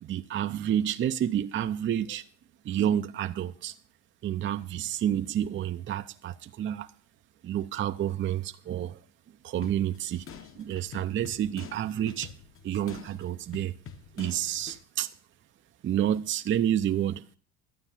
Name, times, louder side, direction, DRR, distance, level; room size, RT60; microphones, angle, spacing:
voice 1, 0.0-2.2 2.6-3.7 4.2-6.9 7.4-9.0 9.4-10.3 10.5-12.3 12.6-13.7 14.1-15.1 15.8-17.2, right 10 dB, 35° right, 0.6 m, -29 dB
sound 1, 9.6-14.8, left 7 dB, 40° left, 1.2 m, -47 dB
12.0 x 8.8 x 7.3 m
supercardioid pair, 105°, 34 cm